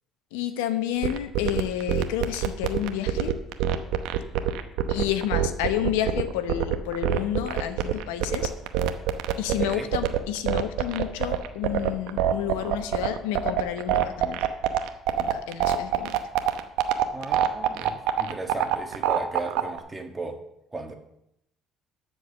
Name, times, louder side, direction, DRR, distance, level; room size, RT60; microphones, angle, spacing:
voice 1, 0.3-3.4 4.9-8.5 9.4-14.4 15.2-16.2, left 11 dB, 85° left, 10 dB, 0.8 m, -30 dB
sound 1, 1.0-19.8, right 12 dB, 75° right, 0.8 m, -24 dB
voice 2, 9.5-9.9 17.1-20.4 20.7-21.0, right 3 dB, 20° right, 4 dB, 1.8 m, -36 dB
13.0 x 4.7 x 6.9 m, 0.81 s
supercardioid pair, 70°, 0 cm